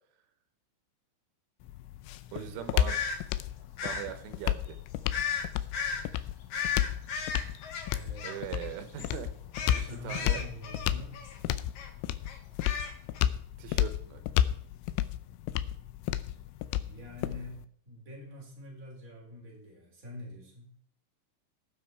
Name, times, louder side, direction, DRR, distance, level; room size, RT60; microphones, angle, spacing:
sound 1, 1.6-17.7, left 12 dB, 85° left, 3.1 m, -32 dB
voice 1, 2.3-3.0 3.8-4.8 8.2-9.3 9.7-10.4 13.6-14.2, right 11 dB, 85° right, 9 dB, 3.5 m, -40 dB
sound 2, 2.9-3.2 3.8-4.1 5.1-5.5 5.7-6.0 6.5-8.7 9.0-9.2 9.5-11.4 11.8-11.9 12.3-13.2, left 6 dB, 65° left, 1.9 m, -35 dB
voice 2, 7.9-8.5 9.6-11.3 16.9-20.7, left 1 dB, 20° right, -3 dB, 4.0 m, -45 dB
18.5 x 6.2 x 4.6 m, 0.63 s
omnidirectional pair, 5.6 m